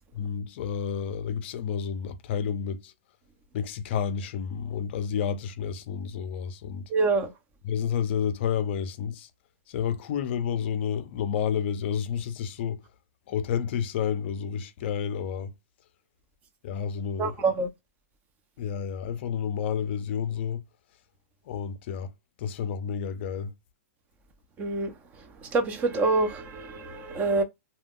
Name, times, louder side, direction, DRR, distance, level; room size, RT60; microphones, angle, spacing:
voice 1, 0.1-2.9 3.5-6.9 7.6-9.3 9.7-12.8 13.3-15.5 16.6-17.4 18.6-20.6 21.5-22.1 22.4-23.5, left 7 dB, 50° left, 0.4 m, -30 dB
voice 2, 6.9-7.3 17.2-17.7 24.6-24.9 25.5-27.4, right 3 dB, 20° right, 0.5 m, -26 dB
2.3 x 2.2 x 3.4 m
hypercardioid pair, 150°, 8 cm